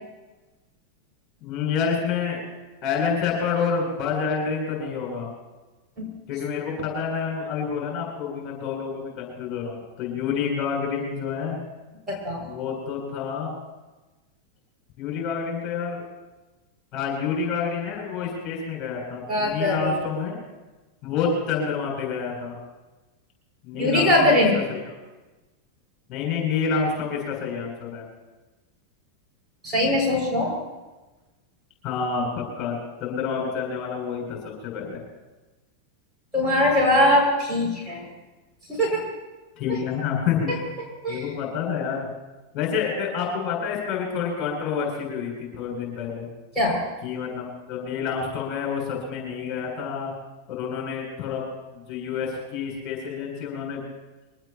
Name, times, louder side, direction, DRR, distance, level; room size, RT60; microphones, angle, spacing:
voice 1, 1.4-2.4 2.8-5.3 6.3-11.6 12.4-13.5 15.0-16.0 16.9-20.4 21.0-22.6 23.6-24.8 26.1-28.1 31.8-35.0 39.6-40.6 41.1-42.1 42.5-46.3 47.0-50.1 50.5-51.4 51.7-53.8, left 6 dB, 35° left, 0 dB, 7.7 m, -28 dB
voice 2, 12.1-12.4 19.3-19.9 23.7-24.6 29.6-30.5 36.3-38.0 38.7-39.0 41.0-41.2 46.5-46.8, left 1 dB, 10° right, -3 dB, 6.7 m, -21 dB
24.0 x 19.0 x 3.1 m, 1.1 s
figure-of-eight pair, 90°, 0 cm